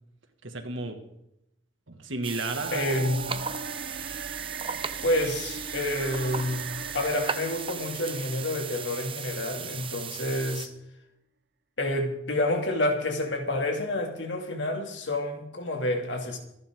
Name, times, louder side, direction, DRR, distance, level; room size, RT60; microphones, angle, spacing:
voice 1, 0.4-1.0 1.9-3.4, right 2 dB, 80° right, 5 dB, 2.2 m, -34 dB
sound 1, 2.2-10.7, right 7 dB, 25° right, 0.8 m, -36 dB
sound 2, 2.4-9.5, right 4 dB, 55° right, 0.8 m, -40 dB
voice 2, 2.7-3.3 5.0-10.7 11.8-16.4, left 1 dB, 65° left, 3 dB, 2.8 m, -29 dB
25.5 x 11.0 x 3.9 m, 0.83 s
head